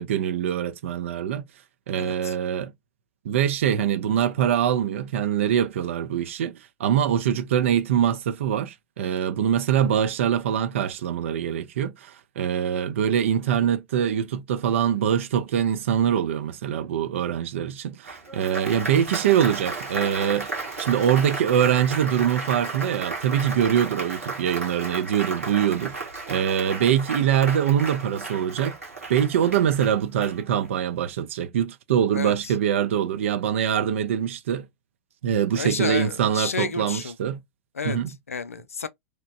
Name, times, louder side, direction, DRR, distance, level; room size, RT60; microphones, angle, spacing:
voice 1, 0.0-1.4 1.9-2.7 3.2-20.5 20.8-25.9 26.3-28.8 29.1-34.7 35.2-37.4 37.8-38.1, right 9 dB, 60° right, 0.4 m, -23 dB
voice 2, 2.0-2.3 32.1-32.5 35.6-37.2 37.8-38.0 38.3-38.9, left 5 dB, 80° left, 0.4 m, -31 dB
Applause, 18.0-30.8, right 3 dB, 85° right, 1.1 m, -34 dB
2.9 x 2.1 x 2.5 m
figure-of-eight pair, 90°, 8 cm